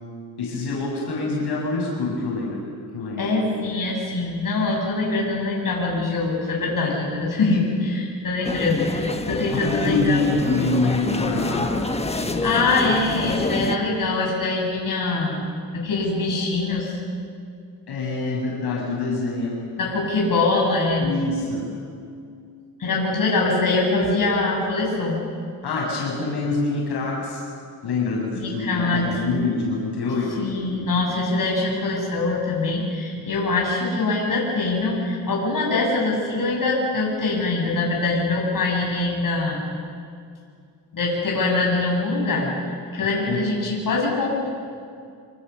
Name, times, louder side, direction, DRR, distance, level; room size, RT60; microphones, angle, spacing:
voice 1, 0.4-2.6 2.9-3.3 9.5-11.7 17.9-19.5 21.0-21.7 25.6-27.4 27.8-30.5 43.3-43.4, left 3 dB, 80° left, -3 dB, 7.2 m, -25 dB
voice 2, 3.1-10.2 12.1-15.4 15.7-17.0 19.8-21.1 22.8-25.2 28.3-29.2 30.4-39.7 40.9-44.5, left 3 dB, 55° left, -2 dB, 7.6 m, -23 dB
sound 1, 8.4-13.8, left 2 dB, 15° left, 1.5 m, -27 dB
27.5 x 26.5 x 7.0 m, 2.3 s
cardioid pair, 110°, 39 cm